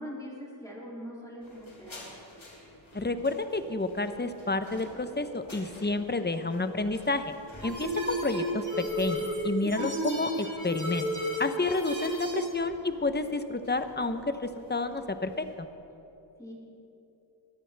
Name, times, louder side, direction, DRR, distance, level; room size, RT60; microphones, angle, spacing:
voice 1, 0.0-2.1 16.4-16.5, equal, 5° left, -5 dB, 2.8 m, -42 dB
sound 1, 1.4-15.5, left 1 dB, 80° left, 2.9 m, -51 dB
voice 2, 2.9-7.3 7.6-11.1 11.4-15.7, left 3 dB, 20° left, 9 dB, 0.8 m, -30 dB
sound 2, 7.6-12.5, equal, 40° right, 2.3 m, -32 dB
20.5 x 14.5 x 3.4 m, 3.0 s
wide cardioid pair, 50°, 46 cm